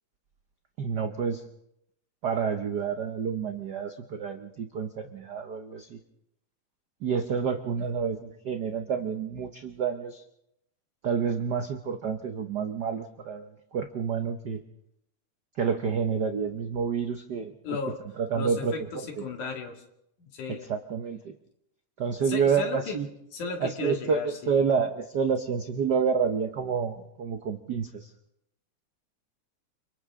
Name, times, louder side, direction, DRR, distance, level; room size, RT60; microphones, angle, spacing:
voice 1, 0.8-1.4 2.2-6.0 7.0-10.2 11.0-14.6 15.6-17.8 18.2-19.2 20.5-21.3 22.0-23.1 23.6-28.1, right 6 dB, 85° right, 6 dB, 0.9 m, -29 dB
voice 2, 17.6-18.0 18.3-19.8 20.2-20.7 22.3-23.0 23.3-24.6, left 4 dB, 85° left, 3 dB, 3.8 m, -35 dB
29.5 x 26.0 x 3.7 m, 0.80 s
omnidirectional pair, 3.4 m